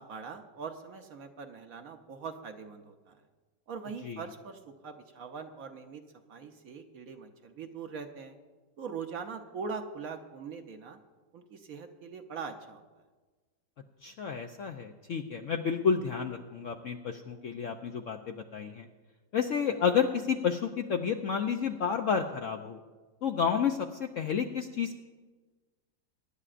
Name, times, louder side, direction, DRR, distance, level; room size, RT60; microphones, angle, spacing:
voice 1, 0.0-3.2 3.7-6.0 6.3-8.4 8.8-11.0 11.3-13.0, right 5 dB, 60° right, 5 dB, 1.1 m, -42 dB
voice 2, 14.0-18.9 19.3-22.8 23.2-25.0, left 7 dB, 65° left, 4 dB, 0.8 m, -30 dB
23.0 x 11.0 x 2.5 m, 1.3 s
omnidirectional pair, 1.9 m